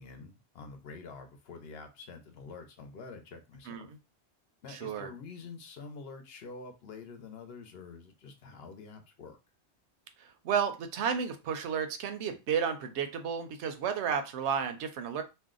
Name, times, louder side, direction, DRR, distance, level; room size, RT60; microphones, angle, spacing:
voice 1, 0.0-3.9 4.6-9.4, left 4 dB, 65° left, 6 dB, 0.8 m, -47 dB
voice 2, 3.7-4.0 4.7-5.1 10.2-15.2, right 7 dB, 80° right, 8 dB, 0.8 m, -32 dB
2.6 x 2.1 x 3.7 m, 0.25 s
omnidirectional pair, 1.2 m